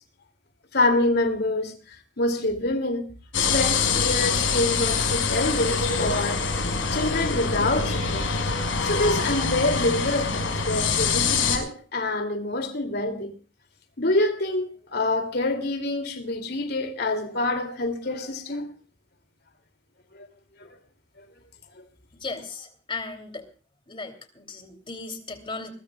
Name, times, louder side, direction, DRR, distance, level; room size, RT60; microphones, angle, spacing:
voice 1, 0.7-3.0 3.4-6.4 6.9-8.2 8.8-13.3 14.0-18.7 20.1-20.3 20.6-20.8 21.2-21.3 21.8-21.9, left 2 dB, 55° left, 2.8 m, -26 dB
sound 1, 3.3-11.6, left 5 dB, 75° left, 5.5 m, -25 dB
voice 2, 22.2-23.5 23.9-25.7, left 3 dB, 25° left, 3.0 m, -36 dB
21.5 x 21.0 x 2.4 m
head